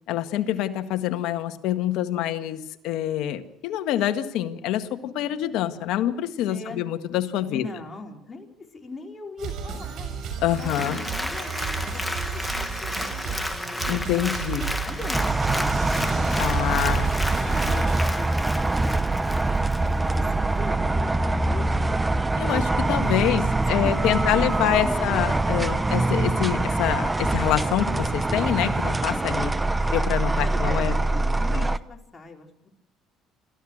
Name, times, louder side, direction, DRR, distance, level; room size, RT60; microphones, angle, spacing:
voice 1, 0.1-7.7 10.4-11.0 13.9-14.7 16.4-17.1 22.4-29.5 29.9-31.0 31.5-31.7, left 12 dB, 75° left, 8 dB, 1.7 m, -26 dB
voice 2, 6.5-6.9 7.5-8.5 8.7-10.2 10.6-12.0 12.3-13.4 13.9-14.0 14.7-15.3 16.8-17.0 17.4-19.1 20.0-21.6 23.2-23.3 23.7-25.0 30.4-32.7, left 3 dB, 25° left, 1 dB, 4.8 m, -40 dB
sound 1, 9.4-18.1, right 6 dB, 65° right, 6.8 m, -33 dB
Applause, 10.5-20.2 20.7-20.8, left 1 dB, 5° left, 1.7 m, -32 dB
sound 2, 15.1-31.8, right 2 dB, 15° right, 0.9 m, -24 dB
29.0 x 15.0 x 6.5 m, 0.77 s
cardioid pair, 95°, 0 cm